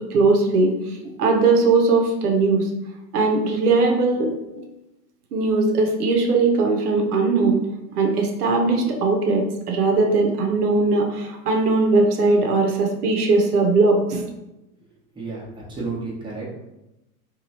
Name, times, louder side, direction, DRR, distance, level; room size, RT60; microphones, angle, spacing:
voice 1, 0.1-0.7 1.2-2.7 3.1-4.3 5.3-7.6 8.0-14.2, right 3 dB, 80° right, 2 dB, 0.7 m, -19 dB
voice 2, 15.1-16.4, right 3 dB, 10° right, -6 dB, 0.9 m, -31 dB
2.9 x 2.3 x 2.7 m, 0.96 s
hypercardioid pair, 105°, 45 cm